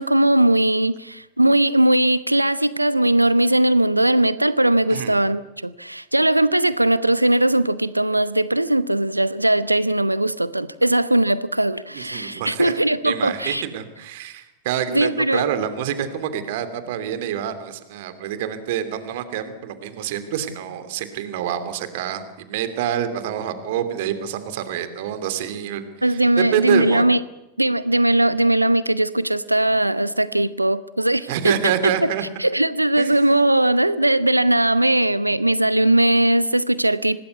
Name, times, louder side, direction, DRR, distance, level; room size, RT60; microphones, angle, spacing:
voice 1, 0.0-13.6 14.9-15.4 26.0-27.2 27.6-31.6 32.0-32.1 32.4-37.2, right 1 dB, 85° right, 16 dB, 1.0 m, -19 dB
voice 2, 11.9-12.8 13.0-27.0 31.3-32.2 33.0-33.2, right 9 dB, 50° right, 10 dB, 2.9 m, -27 dB
25.5 x 19.0 x 8.2 m, 0.93 s
figure-of-eight pair, 90°, 0 cm